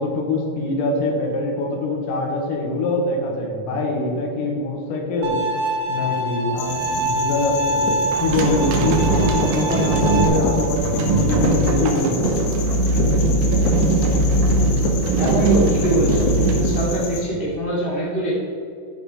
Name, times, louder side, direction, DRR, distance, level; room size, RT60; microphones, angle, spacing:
voice 1, 0.0-5.4 5.9-12.5, left 2 dB, 90° left, 0 dB, 4.1 m, -24 dB
Bowed string instrument, 5.2-10.3, right 1 dB, 60° right, 2.1 m, -25 dB
sound 1, 6.6-17.2, left 3 dB, 70° left, 3.9 m, -29 dB
sound 2, 8.1-17.6, right 2 dB, 85° right, 3.8 m, -20 dB
voice 2, 15.2-16.3 16.5-18.3, right 1 dB, 35° right, -6 dB, 0.8 m, -22 dB
12.0 x 9.9 x 3.6 m, 2.4 s
omnidirectional pair, 5.8 m